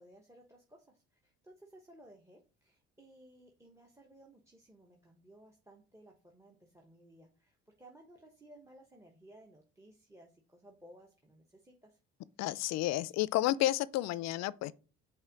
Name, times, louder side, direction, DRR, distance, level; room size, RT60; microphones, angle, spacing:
voice 1, 0.0-12.0 13.2-13.3, right 1 dB, 10° right, 1.0 m, -59 dB
voice 2, 12.4-14.7, left 15 dB, 60° left, 0.5 m, -31 dB
5.5 x 3.6 x 5.1 m
supercardioid pair, 65°, 30 cm